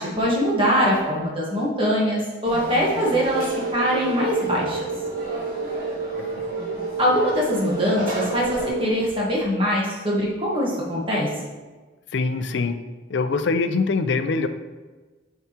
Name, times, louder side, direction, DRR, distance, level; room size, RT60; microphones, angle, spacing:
voice 1, 0.0-3.4 3.7-4.8 7.0-11.3, equal, 25° right, -4 dB, 1.4 m, -22 dB
Conversation / Crowd, 2.4-8.7, right 1 dB, 45° right, 2.0 m, -34 dB
sound 1, 3.3-8.9, right 4 dB, 80° right, 0.4 m, -31 dB
voice 2, 12.1-12.8 13.1-14.5, left 4 dB, 65° left, 9 dB, 0.4 m, -23 dB
8.9 x 4.7 x 2.9 m, 1.3 s
head